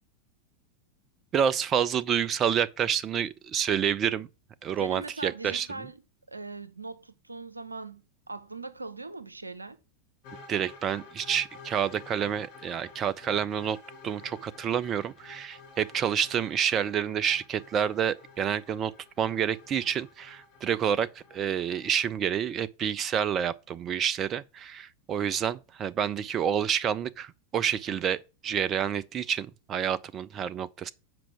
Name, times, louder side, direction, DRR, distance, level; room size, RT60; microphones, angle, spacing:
voice 1, 1.3-4.3 4.6-5.7 10.5-13.8 14.0-18.9 19.2-30.9, right 8 dB, 30° right, 0.3 m, -28 dB
voice 2, 4.8-6.0 6.3-8.0 8.3-9.8, right 3 dB, 80° right, 0.7 m, -40 dB
sound 1, 10.2-22.0, left 4 dB, 45° left, 2.8 m, -51 dB
7.6 x 4.9 x 6.1 m
figure-of-eight pair, 90°, 0 cm